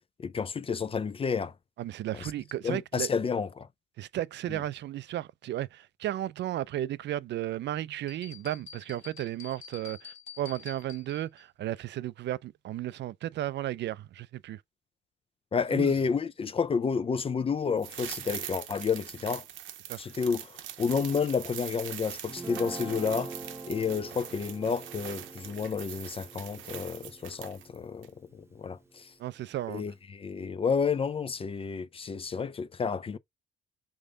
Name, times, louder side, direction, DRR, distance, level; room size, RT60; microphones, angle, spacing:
voice 1, 0.2-1.5 2.6-3.7 15.5-19.4 20.0-23.3 23.7-29.1 29.7-33.2, left 6 dB, 30° left, 0.4 m, -30 dB
voice 2, 1.8-3.1 4.0-14.6 15.7-16.0 19.9-20.1 29.2-29.8, right 13 dB, 65° right, 0.4 m, -34 dB
sound 1, 8.1-11.4, left 7 dB, 75° left, 1.8 m, -48 dB
sound 2, 17.8-27.8 28.0-28.1, right 11 dB, 80° right, 0.9 m, -42 dB
Guitar, 22.3-28.6, right 3 dB, 10° right, 0.9 m, -44 dB
3.6 x 3.5 x 3.7 m
cardioid pair, 90°, 20 cm